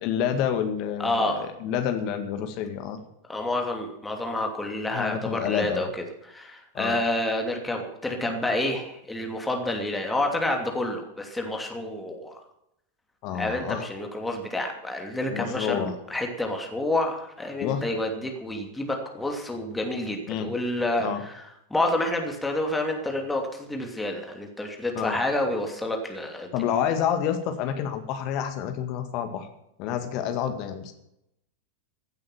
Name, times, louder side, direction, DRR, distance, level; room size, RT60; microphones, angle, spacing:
voice 1, 0.0-3.0 4.9-5.9 6.8-6.9 13.2-13.9 15.3-15.9 17.6-17.8 20.3-20.5 21.0-21.2 25.0-25.2 26.5-29.5 29.8-30.9, left 9 dB, 40° left, 7 dB, 2.0 m, -28 dB
voice 2, 1.0-1.5 3.3-5.9 6.2-12.4 13.3-26.5, left 1 dB, 5° left, 2 dB, 2.8 m, -29 dB
16.0 x 8.7 x 7.4 m, 0.80 s
figure-of-eight pair, 90°, 0 cm